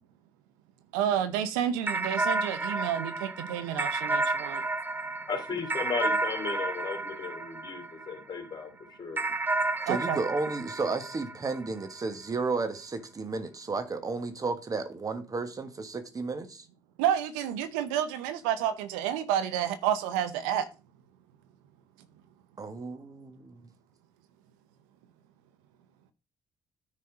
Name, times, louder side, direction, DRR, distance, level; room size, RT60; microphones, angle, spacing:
voice 1, 0.9-4.6 9.9-10.2 17.0-20.7, right 10 dB, 90° right, 0.8 m, -30 dB
sound 1, 1.9-8.5 9.2-11.9, right 2 dB, 20° right, 0.7 m, -31 dB
voice 2, 5.3-9.2, left 5 dB, 40° left, 2.7 m, -35 dB
voice 3, 9.9-16.6 22.6-23.7, right 4 dB, 35° right, 1.5 m, -33 dB
9.6 x 4.2 x 5.0 m
supercardioid pair, 65°, 11 cm